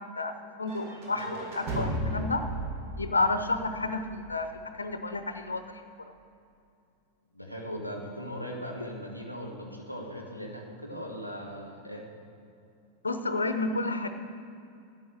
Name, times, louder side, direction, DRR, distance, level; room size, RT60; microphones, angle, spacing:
voice 1, 0.6-2.4 3.0-4.5 4.8-5.7 13.0-14.1, left 3 dB, 75° left, 9 dB, 0.7 m, -30 dB
sound 1, 0.7-4.6, right 1 dB, 45° right, 2.4 m, -35 dB
voice 2, 7.3-12.1, equal, 90° right, -1 dB, 2.0 m, -39 dB
12.5 x 8.8 x 6.6 m, 2.6 s
figure-of-eight pair, 90°, 0 cm